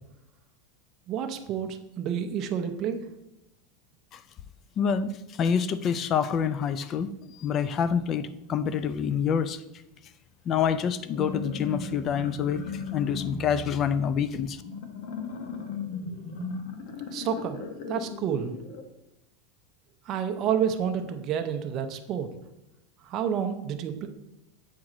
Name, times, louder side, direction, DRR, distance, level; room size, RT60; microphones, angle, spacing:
voice 1, 1.1-3.0 17.1-17.6 17.9-18.6 20.1-22.3 23.0-24.1, right 8 dB, 35° right, 6 dB, 0.5 m, -29 dB
voice 2, 4.8-5.1 5.4-7.1 7.4-9.6 10.5-12.6 12.9-14.6, left 7 dB, 30° left, 14 dB, 0.3 m, -26 dB
sound 1, 11.0-18.8, left 5 dB, 65° left, 1.0 m, -37 dB
7.3 x 4.7 x 3.8 m, 0.90 s
supercardioid pair, 160°, 0 cm